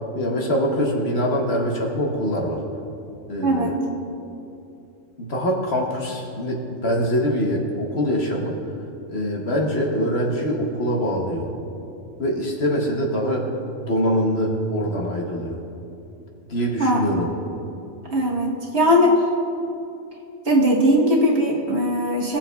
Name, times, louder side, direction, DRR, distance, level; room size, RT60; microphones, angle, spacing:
voice 1, 0.1-2.6 3.3-3.8 5.2-8.6 9.1-11.5 12.2-13.5 13.9-15.6 16.5-17.3, equal, 55° left, 0 dB, 1.1 m, -23 dB
voice 2, 3.4-3.8 16.8-17.0 18.1-19.2 20.4-22.4, equal, 55° right, -2 dB, 1.4 m, -19 dB
17.5 x 7.1 x 2.3 m, 2.7 s
omnidirectional pair, 1.4 m